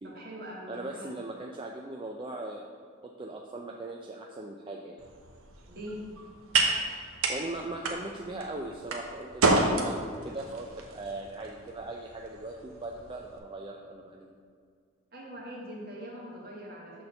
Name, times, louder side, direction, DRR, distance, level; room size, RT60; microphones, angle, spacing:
voice 1, 0.0-1.1 5.7-6.0 15.1-17.0, equal, 45° right, -3 dB, 1.7 m, -42 dB
voice 2, 0.7-2.6 3.0-5.0 6.7-14.3, right 2 dB, 25° right, 0 dB, 0.4 m, -39 dB
sound 1, 5.0-13.4, right 3 dB, 80° right, 0.9 m, -31 dB
6.5 x 4.3 x 6.6 m, 2.1 s
head